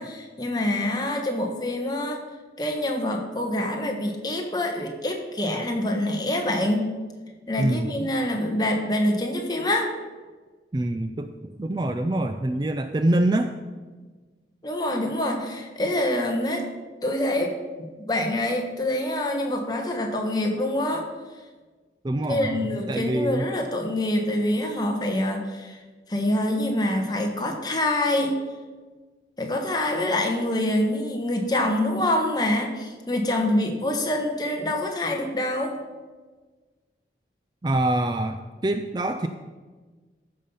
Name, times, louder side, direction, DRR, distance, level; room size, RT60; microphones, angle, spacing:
voice 1, 0.0-2.2 2.6-6.9 7.5-9.9 14.6-16.7 17.0-21.1 22.3-25.8 26.1-28.4 29.4-35.7, left 1 dB, 25° left, 2 dB, 1.3 m, -26 dB
voice 2, 7.6-8.1 10.7-11.3 11.6-13.5 22.0-23.5 37.6-39.3, right 1 dB, 25° right, 8 dB, 0.4 m, -25 dB
14.0 x 5.7 x 5.5 m, 1.4 s
head